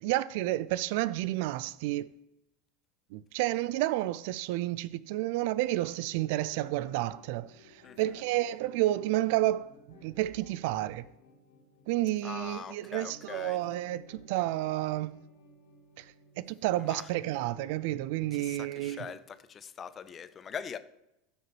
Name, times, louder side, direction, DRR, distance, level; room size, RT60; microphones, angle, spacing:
voice 1, 0.0-2.1 3.1-11.0 11.9-15.1 16.0-19.1, right 16 dB, 65° right, 0.3 m, -31 dB
sound 1, 6.1-17.9, left 2 dB, 85° left, 2.2 m, -57 dB
voice 2, 12.2-13.6 16.9-17.0 18.4-20.8, left 7 dB, 30° left, 0.5 m, -42 dB
13.0 x 5.0 x 3.0 m
hypercardioid pair, 85°, 0 cm